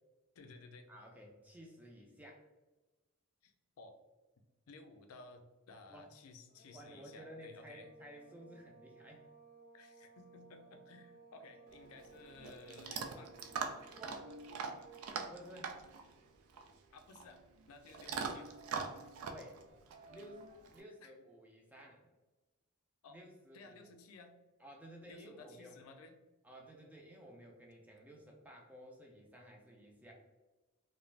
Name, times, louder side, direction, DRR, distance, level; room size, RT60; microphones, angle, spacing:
voice 1, 0.4-0.9 3.4-4.0 4.7-7.9 9.7-13.3 16.9-18.5 20.9-21.1 23.0-23.2 23.5-24.4 25.1-26.2, left 3 dB, 90° left, 5 dB, 0.4 m, -56 dB
voice 2, 0.9-2.5 5.9-6.1 6.7-9.3 13.9-14.4 15.3-15.8 19.3-19.6 20.1-22.1 23.1-23.9 24.6-25.8 26.4-30.1, equal, 5° right, -1 dB, 0.3 m, -54 dB
sound 1, 6.5-15.2, right 4 dB, 45° left, 0.8 m, -61 dB
Chewing mastication / Dog, 11.7-20.8, right 5 dB, 85° right, 0.3 m, -44 dB
2.4 x 2.1 x 3.1 m, 1.1 s
head